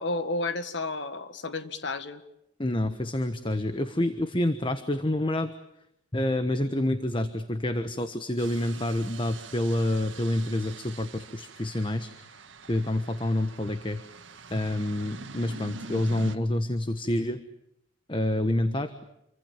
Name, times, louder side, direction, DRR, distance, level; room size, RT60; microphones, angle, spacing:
voice 1, 0.0-2.2, left 2 dB, 65° left, 11 dB, 1.9 m, -31 dB
voice 2, 2.6-5.5 6.1-12.1 12.7-14.0 14.5-17.4 18.1-18.9, left 1 dB, 25° left, 9 dB, 1.2 m, -28 dB
sound 1, 8.4-16.4, right 3 dB, 70° right, 1.8 m, -44 dB
28.0 x 24.5 x 7.4 m, 0.81 s
head